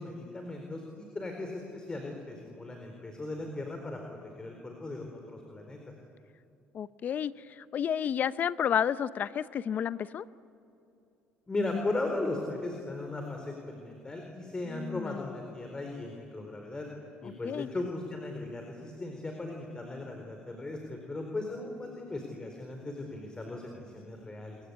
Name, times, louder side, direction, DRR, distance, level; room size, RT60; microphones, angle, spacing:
voice 1, 0.0-5.8 11.5-16.9 17.2-24.6, left 2 dB, 20° left, 3 dB, 4.3 m, -37 dB
voice 2, 6.7-10.2 14.7-15.3 17.2-17.7, left 8 dB, 50° left, 16 dB, 0.7 m, -31 dB
29.5 x 23.5 x 8.3 m, 2.7 s
supercardioid pair, 80°, 4 cm